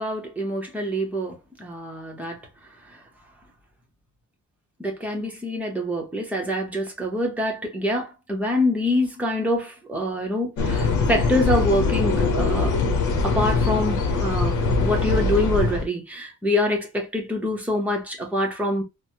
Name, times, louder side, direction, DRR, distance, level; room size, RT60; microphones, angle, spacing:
voice 1, 0.0-2.4 2.9-3.0 4.8-12.7 13.2-18.8, left 1 dB, 5° right, 0.8 m, -25 dB
sound 1, 10.6-15.8, left 4 dB, 70° left, 0.9 m, -22 dB
3.1 x 2.1 x 2.7 m
wide cardioid pair, 160°, 31 cm